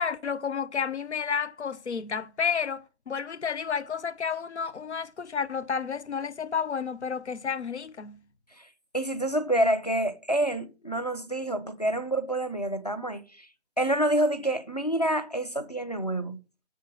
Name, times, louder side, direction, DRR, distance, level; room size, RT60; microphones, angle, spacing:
voice 1, 0.0-8.2, left 6 dB, 75° left, 0.7 m, -31 dB
voice 2, 8.9-13.5 13.8-16.4, right 1 dB, 35° left, 0.7 m, -27 dB
7.5 x 5.8 x 5.3 m
figure-of-eight pair, 180°, 34 cm